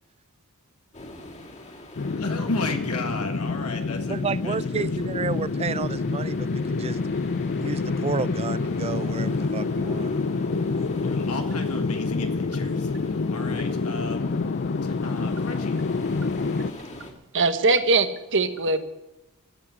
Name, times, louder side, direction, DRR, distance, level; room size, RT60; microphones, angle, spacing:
sound 1, 0.9-17.1, left 1 dB, 30° left, 2.5 m, -44 dB
sound 2, 2.0-16.7, left 3 dB, 50° left, 0.5 m, -27 dB
voice 1, 2.2-4.9 11.0-14.5 14.8-15.8, left 3 dB, 75° left, 4 dB, 1.7 m, -33 dB
voice 2, 4.1-7.0 7.6-10.1, right 4 dB, 25° right, 18 dB, 0.4 m, -31 dB
voice 3, 17.3-18.8, right 3 dB, 55° right, 9 dB, 1.3 m, -21 dB
15.0 x 8.5 x 9.6 m, 0.99 s
head